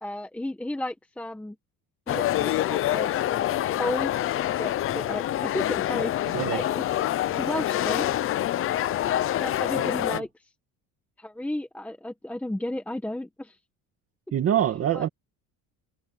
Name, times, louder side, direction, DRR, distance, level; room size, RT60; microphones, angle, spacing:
voice 1, 0.0-1.6 2.1-3.1 3.8-4.1 4.6-8.2 9.4-10.3 11.2-13.6 14.9-15.0, left 1 dB, 5° left, 1.3 m, -33 dB
sound 1, 2.1-10.2, left 13 dB, 40° left, 0.6 m, -26 dB
voice 2, 14.3-15.1, right 10 dB, 40° right, 2.4 m, -25 dB
cardioid pair, 170°, 35 cm